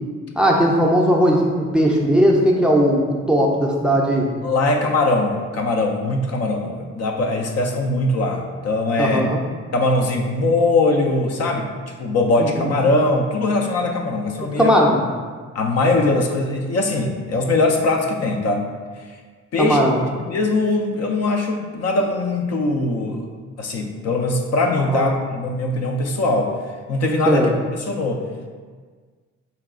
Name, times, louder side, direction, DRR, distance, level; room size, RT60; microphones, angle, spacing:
voice 1, 0.4-4.3 9.0-9.4 12.4-12.7 14.6-15.0 19.6-20.0 24.9-25.1 27.3-27.5, equal, 5° right, -1 dB, 0.5 m, -17 dB
voice 2, 4.4-9.3 9.7-11.7 12.0-14.7 15.5-18.7 19.5-23.3 23.6-26.5 26.9-27.5 27.8-28.2, left 2 dB, 55° left, 3 dB, 0.5 m, -21 dB
4.1 x 2.3 x 3.6 m, 1.5 s
cardioid pair, 90°, 30 cm